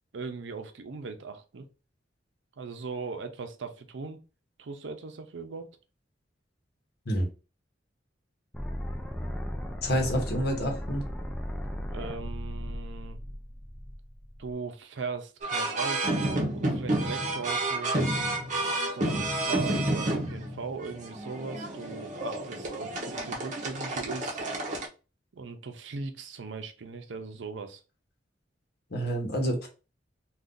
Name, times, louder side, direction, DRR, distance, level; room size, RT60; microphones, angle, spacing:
voice 1, 0.1-1.7 2.6-4.2 4.6-5.7 11.9-13.2 14.4-17.9 18.6-24.4 25.3-27.8, right 4 dB, 80° right, 0.6 m, -39 dB
sound 1, 8.5-14.5, equal, 5° left, 0.4 m, -36 dB
voice 2, 9.8-11.0 28.9-29.7, equal, 60° left, 1.0 m, -28 dB
sound 2, 15.4-24.9, right 1 dB, 45° right, 0.8 m, -30 dB
2.6 x 2.4 x 3.6 m
head